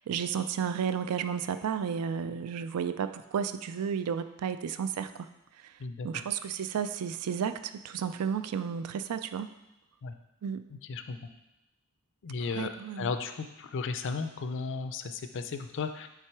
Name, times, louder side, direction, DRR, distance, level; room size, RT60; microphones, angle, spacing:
voice 1, 0.0-5.3 5.6-5.7 6.0-9.5 10.4-10.7 12.5-13.1, right 7 dB, 85° right, 11 dB, 0.4 m, -32 dB
voice 2, 10.9-11.3 12.2-12.7 13.0-16.1, left 4 dB, 55° left, 8 dB, 0.4 m, -34 dB
6.0 x 3.7 x 4.6 m, 0.93 s
head